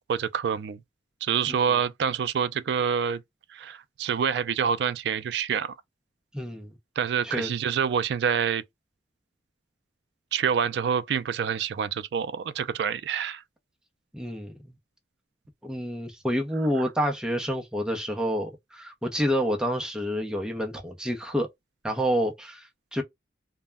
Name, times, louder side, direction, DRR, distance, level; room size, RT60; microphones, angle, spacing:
voice 1, 0.1-0.8 1.2-3.2 3.5-5.7 7.0-8.6 10.3-13.4, right 7 dB, 65° right, 0.3 m, -27 dB
voice 2, 1.5-1.8 6.3-6.7 7.2-7.5 14.1-14.8 15.6-21.5 21.8-23.0, equal, 5° right, 0.5 m, -28 dB
2.1 x 2.0 x 3.3 m
head